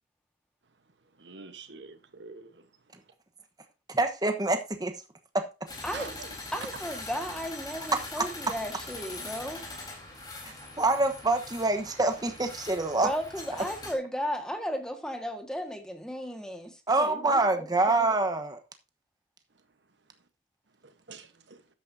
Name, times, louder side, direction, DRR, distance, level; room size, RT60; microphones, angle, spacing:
voice 1, 1.2-2.7 5.9-6.3 6.6-6.7 20.8-21.6, right 4 dB, 85° right, 1.1 m, -45 dB
voice 2, 3.9-4.9 5.3-5.5 8.2-8.3 10.4-13.1 16.9-18.6, right 2 dB, 25° right, 1.1 m, -26 dB
sound 1, 5.7-13.9, left 2 dB, 25° left, 3.8 m, -42 dB
voice 3, 6.5-9.6 13.0-18.1, equal, 5° left, 1.6 m, -35 dB
12.5 x 9.2 x 2.7 m
head